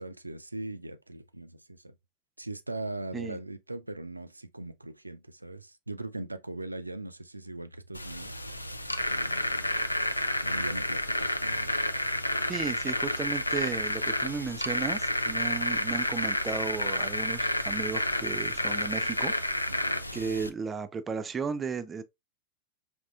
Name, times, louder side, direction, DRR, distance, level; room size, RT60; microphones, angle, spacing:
voice 1, 0.0-1.9 2.4-8.7 9.1-9.8 10.4-11.8 19.7-20.1, right 2 dB, 85° right, 0.4 m, -40 dB
sound 1, 7.9-20.5, left 1 dB, 85° left, 0.4 m, -30 dB
voice 2, 12.5-19.3 20.1-22.0, right 5 dB, 20° right, 0.5 m, -35 dB
5.3 x 2.9 x 2.4 m
figure-of-eight pair, 90°, 0 cm